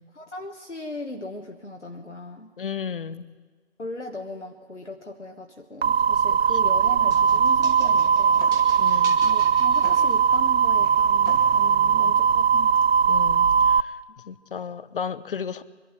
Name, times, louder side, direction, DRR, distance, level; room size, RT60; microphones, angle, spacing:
voice 1, 0.1-2.5 3.8-8.9 9.2-12.7, left 1 dB, 90° left, 3 dB, 1.4 m, -38 dB
voice 2, 2.6-3.3 6.6-6.7 8.8-9.2 11.9-12.1 13.1-14.0 14.2-15.6, left 7 dB, 50° left, 15 dB, 0.8 m, -34 dB
sound 1, 5.8-13.8, right 7 dB, 60° right, 0.6 m, -20 dB
sound 2, 7.1-10.5, right 3 dB, 10° right, 1.1 m, -43 dB
sound 3, 7.5-13.0, left 2 dB, 10° left, 1.7 m, -47 dB
23.0 x 12.0 x 9.7 m, 1.4 s
figure-of-eight pair, 135°, 35 cm